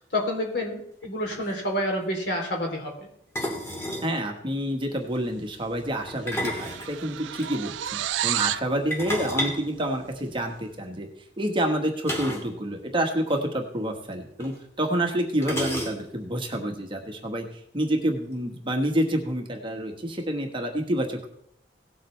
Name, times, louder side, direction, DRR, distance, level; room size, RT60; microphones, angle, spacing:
voice 1, 0.0-3.1, left 1 dB, 65° left, 1 dB, 3.2 m, -29 dB
sound 1, 1.0-1.1 1.3-1.5 3.3-4.1 6.1-7.5 8.9-10.6 12.0-12.6 12.8-12.9 13.2-13.4 14.4-14.5 15.4-16.3, equal, 15° left, 2.4 m, -32 dB
voice 2, 4.0-11.1 11.4-21.3, right 1 dB, 30° right, 3 dB, 1.4 m, -28 dB
sound 2, 5.5-5.8 6.0-8.7, right 12 dB, 85° right, 0.4 m, -31 dB
18.0 x 7.8 x 3.3 m, 0.73 s
head